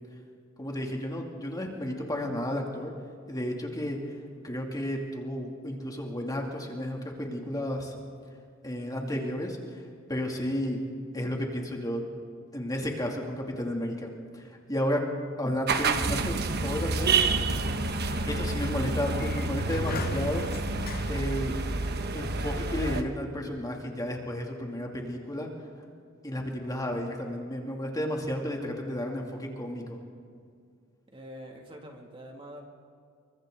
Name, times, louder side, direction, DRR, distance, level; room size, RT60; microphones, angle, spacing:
voice 1, 0.6-2.9 3.3-4.0 4.4-7.9 8.6-9.8 10.1-10.8 11.1-12.0 12.5-15.1 15.4-17.2 18.2-20.4 21.1-21.5 22.1-25.5 26.2-30.0, left 1 dB, 20° left, 0 dB, 2.7 m, -32 dB
sound 1, 15.7-23.0, right 3 dB, 50° right, 1.1 m, -28 dB
Sliding door, 16.5-22.1, left 4 dB, 50° left, 0.9 m, -42 dB
voice 2, 31.1-32.6, equal, 25° right, 1 dB, 2.4 m, -45 dB
28.0 x 24.5 x 3.9 m, 2.2 s
head